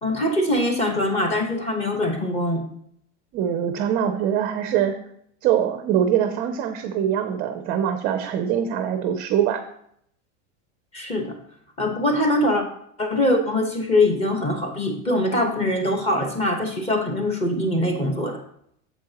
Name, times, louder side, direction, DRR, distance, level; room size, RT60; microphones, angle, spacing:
voice 1, 0.0-2.6 10.9-11.4 11.8-12.6 13.0-18.4, left 1 dB, 15° left, 3 dB, 1.1 m, -23 dB
voice 2, 3.3-4.9 5.4-9.6, right 9 dB, 25° right, 7 dB, 0.4 m, -23 dB
8.5 x 7.3 x 2.9 m, 0.69 s
supercardioid pair, 160°, 35 cm